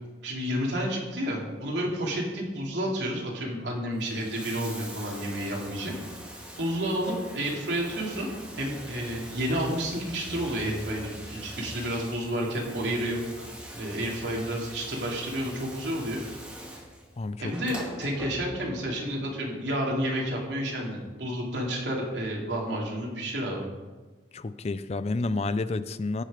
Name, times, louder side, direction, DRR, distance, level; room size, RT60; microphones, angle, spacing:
voice 1, 0.2-5.9 6.6-8.3 8.6-16.2 17.4-23.7, equal, 80° right, -2 dB, 2.9 m, -30 dB
Bathtub (filling or washing), 4.0-18.8 19.9-20.0, equal, 5° right, 1.8 m, -43 dB
voice 2, 17.2-17.5 24.3-26.2, left 3 dB, 35° left, 13 dB, 0.4 m, -30 dB
16.5 x 6.5 x 5.1 m, 1.3 s
head